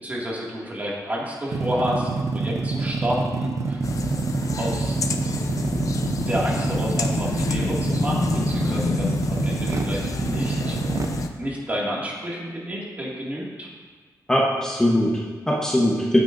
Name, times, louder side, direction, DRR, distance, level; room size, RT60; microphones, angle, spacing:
voice 1, 0.0-3.8 4.6-5.0 6.3-10.8 11.4-13.7, equal, 25° right, -4 dB, 2.2 m, -30 dB
sound 1, 1.5-11.3, right 3 dB, 50° right, 0.7 m, -26 dB
sound 2, 3.8-11.3, left 4 dB, 55° left, 0.7 m, -29 dB
voice 2, 14.3-16.2, left 1 dB, 10° left, -4 dB, 1.1 m, -21 dB
14.5 x 9.4 x 2.6 m, 1.4 s
wide cardioid pair, 160°, 7 cm